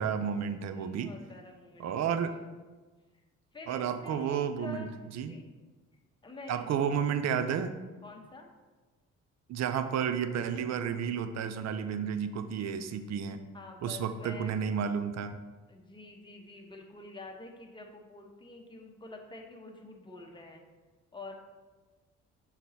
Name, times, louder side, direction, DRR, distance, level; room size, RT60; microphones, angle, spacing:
voice 1, 0.0-1.1 1.8-2.4 3.7-4.9 5.1-5.3 6.5-7.8 9.5-13.4 13.8-15.4, right 7 dB, 60° right, 10 dB, 0.6 m, -31 dB
voice 2, 0.5-2.5 3.5-5.4 6.2-6.9 8.0-8.5 13.5-14.5 15.7-20.6 21.1-21.3, left 3 dB, 15° left, 1 dB, 1.1 m, -48 dB
6.2 x 4.0 x 4.2 m, 1.3 s
cardioid pair, 90°, 30 cm